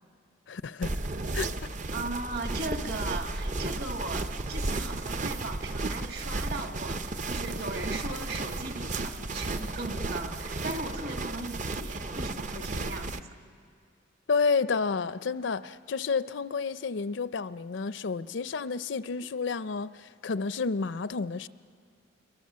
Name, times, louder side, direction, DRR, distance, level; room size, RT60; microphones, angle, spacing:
voice 1, 0.5-1.0 1.3-1.7 14.3-21.5, left 4 dB, 70° left, 15 dB, 0.5 m, -30 dB
sound 1, 0.8-13.2, right 2 dB, 40° right, 0.7 m, -34 dB
voice 2, 1.9-13.3, right 2 dB, 55° right, 4 dB, 2.1 m, -38 dB
sound 2, 4.6-11.3, right 1 dB, 70° right, 5.3 m, -51 dB
27.0 x 22.5 x 7.5 m, 2.2 s
head